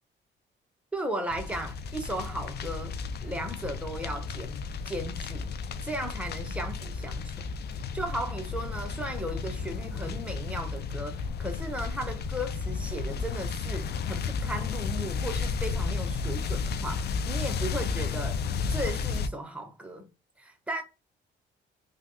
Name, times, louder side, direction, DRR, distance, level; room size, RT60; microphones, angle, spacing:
voice 1, 0.9-5.5 5.8-18.4 18.7-20.1 20.4-20.8, right 1 dB, 5° right, 0.9 m, -36 dB
sound 1, 1.3-19.3, left 5 dB, 55° left, 0.4 m, -33 dB
3.3 x 2.3 x 2.6 m
cardioid pair, 90°, 20 cm